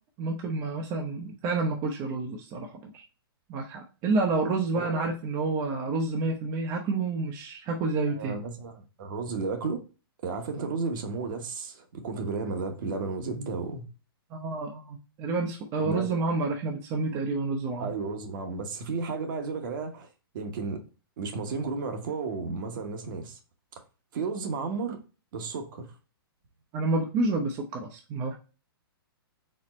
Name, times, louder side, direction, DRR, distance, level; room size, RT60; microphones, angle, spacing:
voice 1, 0.2-3.0 3.5-8.3 14.3-17.9 26.7-28.4, right 3 dB, 25° right, 0.5 m, -29 dB
voice 2, 4.7-5.1 8.1-9.8 10.2-13.8 15.8-16.2 17.8-20.1 20.3-20.8 21.2-23.4 24.1-25.0 25.3-25.9, right 4 dB, 55° right, 1.0 m, -33 dB
4.2 x 2.1 x 4.0 m
hypercardioid pair, 145°, 13 cm